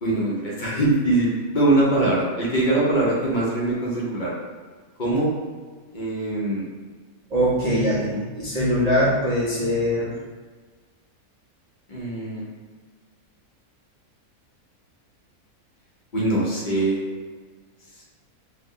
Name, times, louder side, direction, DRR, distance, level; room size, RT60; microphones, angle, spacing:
voice 1, 0.0-4.3 5.0-5.3 5.9-6.6 7.6-8.2 11.9-12.5 16.1-17.0, right 2 dB, 50° left, -5 dB, 0.6 m, -22 dB
voice 2, 7.3-8.0 8.3-10.2, equal, 75° right, -8 dB, 0.3 m, -22 dB
3.2 x 2.0 x 3.7 m, 1.5 s
omnidirectional pair, 1.6 m